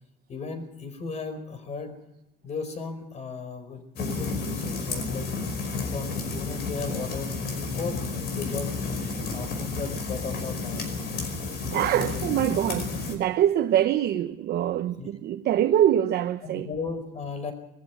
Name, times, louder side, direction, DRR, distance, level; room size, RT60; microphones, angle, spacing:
voice 1, 0.3-2.0 2.4-5.3 5.8-8.7 9.3-10.9 11.9-12.6 15.0-15.1 16.4-17.5, left 4 dB, 40° left, 4.6 m, -36 dB
sound 1, 4.0-13.1, left 4 dB, 65° left, 5.3 m, -31 dB
voice 2, 11.7-16.7, right 11 dB, 65° right, 1.0 m, -24 dB
21.5 x 14.5 x 9.3 m
cardioid pair, 140°, 18 cm